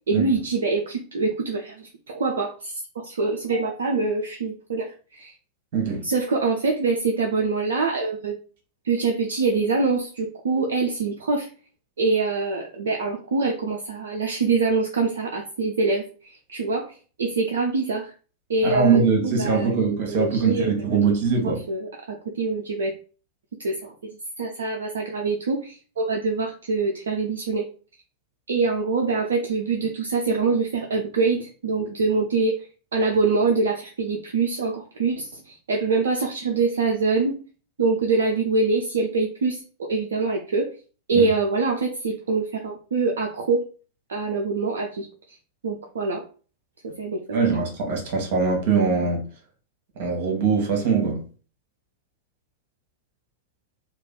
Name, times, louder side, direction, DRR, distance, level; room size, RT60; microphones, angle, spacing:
voice 1, 0.1-5.3 6.0-8.4 8.8-11.5 12.0-16.9 17.2-18.1 18.5-21.0 21.4-22.9 23.6-23.9 24.4-27.7 28.5-32.6 32.9-37.4 37.8-40.7 41.1-43.6 44.1-45.1 45.6-46.2 47.0-47.4, right 4 dB, 65° right, 0.5 m, -25 dB
voice 2, 5.7-6.0 18.6-21.6 41.1-41.3 47.3-49.3 50.0-51.2, right 5 dB, 50° right, 1.2 m, -22 dB
3.1 x 2.4 x 3.7 m
figure-of-eight pair, 90°, 0 cm